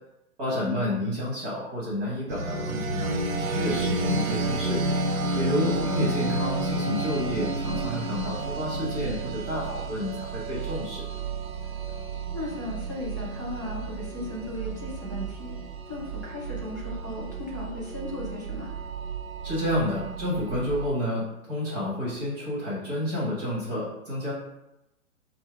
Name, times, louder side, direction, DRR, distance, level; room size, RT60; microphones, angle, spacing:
voice 1, 0.4-3.1 3.4-4.8 5.3-11.1 19.4-24.3, left 1 dB, 40° right, -5 dB, 1.6 m, -30 dB
sound 1, 2.3-20.9, right 2 dB, 75° right, 0.8 m, -31 dB
voice 2, 12.3-15.6 15.9-18.7, left 2 dB, 15° right, -8 dB, 0.3 m, -36 dB
4.5 x 2.2 x 4.5 m, 0.90 s
hypercardioid pair, 155°, 42 cm